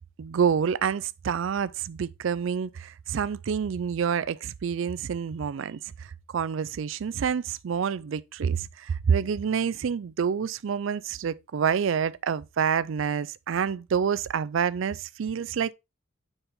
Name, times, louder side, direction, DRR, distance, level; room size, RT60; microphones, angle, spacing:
voice 1, 0.2-15.7, right 7 dB, 70° right, 0.4 m, -28 dB
6.9 x 5.5 x 3.5 m
head